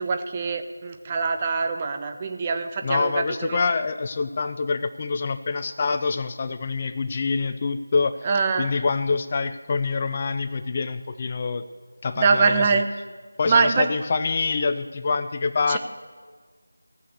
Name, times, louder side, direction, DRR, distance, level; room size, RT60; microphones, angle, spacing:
voice 1, 0.0-3.6 8.2-8.7 12.2-12.9 13.5-13.9 15.7-15.8, right 4 dB, 20° right, 6 dB, 0.7 m, -23 dB
voice 2, 2.8-8.3 8.6-11.7 12.0-12.8 13.4-15.8, left 4 dB, 30° left, 11 dB, 0.4 m, -26 dB
17.5 x 6.5 x 6.8 m, 1.5 s
figure-of-eight pair, 165°, 0 cm